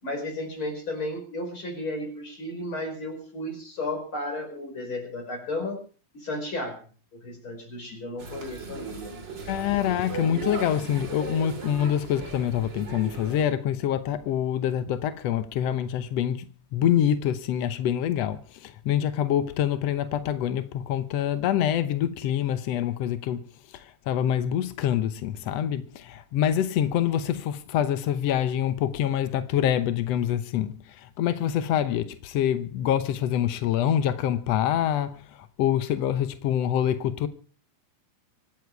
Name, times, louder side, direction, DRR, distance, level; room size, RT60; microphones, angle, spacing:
voice 1, 0.0-5.8 6.1-6.9 7.1-9.1, left 1 dB, 35° left, 5.6 m, -33 dB
sound 1, 8.2-13.4, right 4 dB, 35° right, 2.8 m, -37 dB
voice 2, 9.5-23.5 23.7-35.2 35.6-37.3, left 10 dB, 85° left, 1.4 m, -26 dB
25.0 x 10.0 x 4.7 m
omnidirectional pair, 4.3 m